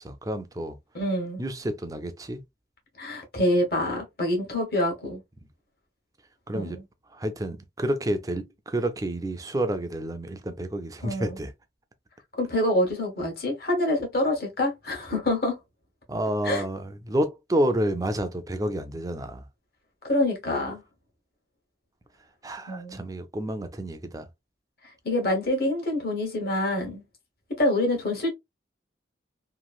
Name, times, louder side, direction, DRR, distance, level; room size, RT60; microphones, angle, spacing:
voice 1, 0.0-0.8 1.4-2.4 6.5-6.8 7.1-11.5 16.1-19.5 22.4-24.3, right 1 dB, 20° right, 0.4 m, -29 dB
voice 2, 0.9-1.4 3.0-5.2 6.5-6.8 11.0-11.4 12.4-15.6 16.4-16.6 20.0-20.8 22.7-23.0 25.0-27.0 27.6-28.3, left 1 dB, 60° left, 1.2 m, -26 dB
3.0 x 2.5 x 2.3 m
head